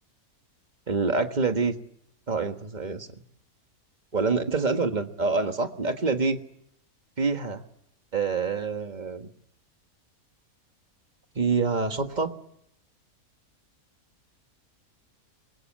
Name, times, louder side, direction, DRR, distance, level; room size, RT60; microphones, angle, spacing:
voice 1, 0.9-1.7 2.3-3.1 4.1-6.4 7.2-7.6 8.1-9.3 11.3-12.3, right 4 dB, 30° right, 7 dB, 1.6 m, -26 dB
26.5 x 22.0 x 7.6 m, 0.76 s
omnidirectional pair, 1.5 m